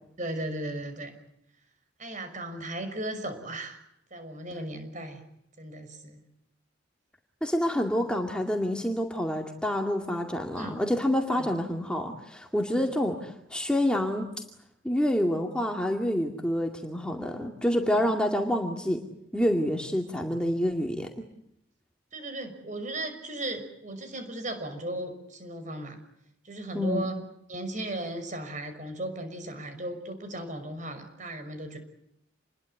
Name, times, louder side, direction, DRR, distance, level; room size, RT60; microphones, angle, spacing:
voice 1, 0.2-1.1 2.0-3.8 4.1-5.2 5.6-6.2 10.5-10.8 11.3-11.5 17.9-18.1 22.1-26.0 26.4-27.2 27.5-31.8, right 1 dB, 40° right, 8 dB, 6.0 m, -36 dB
voice 2, 7.4-14.3 14.8-19.0 19.3-21.2 26.7-27.1, equal, 5° left, 2 dB, 2.3 m, -27 dB
28.5 x 22.0 x 8.4 m, 0.79 s
head